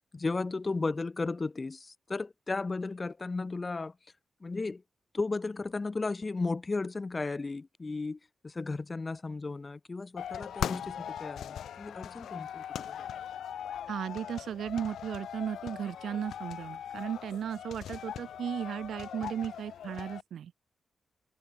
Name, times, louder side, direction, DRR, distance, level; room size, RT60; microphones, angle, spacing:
voice 1, 0.1-3.9 4.4-4.8 5.1-8.2 8.4-13.1, left 3 dB, 35° left, 2.1 m, -34 dB
sound 1, 10.2-20.2, left 9 dB, 85° left, 0.7 m, -40 dB
voice 2, 13.9-20.5, right 9 dB, 85° right, 1.1 m, -36 dB
cardioid pair, 75°, 0 cm